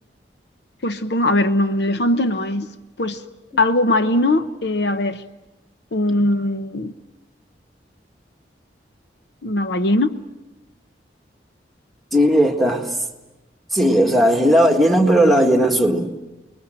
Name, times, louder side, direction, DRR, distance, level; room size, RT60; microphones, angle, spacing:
voice 1, 0.8-2.7 3.0-3.2 3.6-5.2 5.9-6.9 9.4-10.2, left 1 dB, 70° left, 0.9 m, -20 dB
voice 2, 12.1-13.0 13.7-16.1, equal, ahead, 1.8 m, -16 dB
29.5 x 21.0 x 7.7 m
head